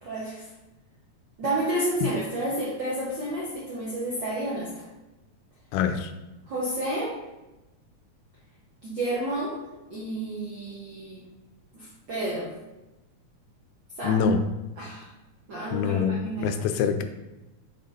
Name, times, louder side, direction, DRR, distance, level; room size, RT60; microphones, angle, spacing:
voice 1, 0.0-0.5 1.4-4.9 6.5-7.1 8.8-9.5 9.9-11.2 11.7-12.5 14.0-14.2 14.8-15.1 15.5-16.5, right 1 dB, 75° right, -5 dB, 1.0 m, -30 dB
voice 2, 5.7-6.1 14.0-14.4 15.7-17.0, left 6 dB, 85° left, 8 dB, 2.1 m, -25 dB
6.4 x 4.1 x 4.0 m, 1.0 s
omnidirectional pair, 3.6 m